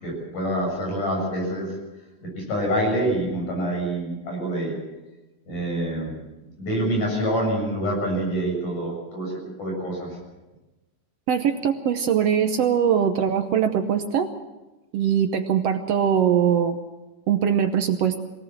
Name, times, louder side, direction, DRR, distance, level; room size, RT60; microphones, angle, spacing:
voice 1, 0.0-1.7 2.4-4.8 5.5-6.1 6.6-10.1, right 1 dB, 65° left, 0 dB, 8.9 m, -26 dB
voice 2, 11.3-14.3 14.9-16.8 17.3-18.2, right 8 dB, 70° right, 7 dB, 1.5 m, -21 dB
22.5 x 17.5 x 7.3 m, 1.1 s
omnidirectional pair, 3.9 m